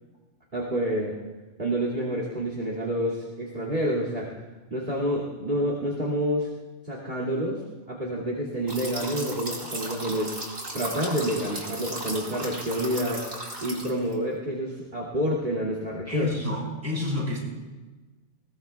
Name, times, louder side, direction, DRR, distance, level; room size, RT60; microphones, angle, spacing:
voice 1, 0.5-1.2 1.6-4.3 4.7-6.5 6.8-10.3 10.7-13.3 13.6-16.3, equal, 40° right, -3 dB, 2.7 m, -28 dB
sound 1, 8.7-14.1, right 1 dB, 90° right, 4.1 m, -36 dB
voice 2, 16.1-17.4, left 2 dB, 10° right, -4 dB, 5.6 m, -29 dB
21.0 x 20.5 x 2.3 m, 1.2 s
omnidirectional pair, 1.3 m